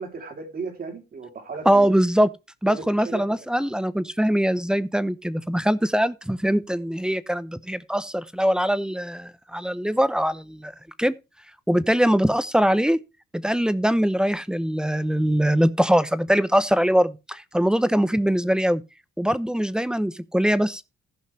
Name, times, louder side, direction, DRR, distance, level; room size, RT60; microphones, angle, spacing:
voice 1, 0.0-1.9 2.7-3.5, right 4 dB, 50° right, 3.2 m, -36 dB
voice 2, 1.7-2.3 2.6-10.7 11.0-11.1 11.7-13.0 13.3-18.8 19.2-20.8, equal, 5° right, 0.8 m, -22 dB
15.0 x 5.5 x 4.6 m
cardioid pair, 90°, 20 cm